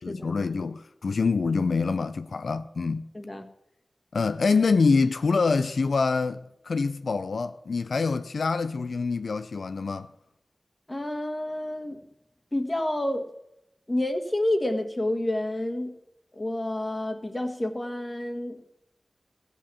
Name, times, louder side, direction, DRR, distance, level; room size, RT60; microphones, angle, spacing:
voice 1, 0.0-3.1 4.1-10.1, left 4 dB, 90° left, 0.4 m, -25 dB
voice 2, 3.1-3.5 10.9-12.0 12.5-13.3 13.9-15.9 16.4-18.6, left 1 dB, 25° left, 1.6 m, -29 dB
15.5 x 5.3 x 7.1 m
wide cardioid pair, 55°, 0 cm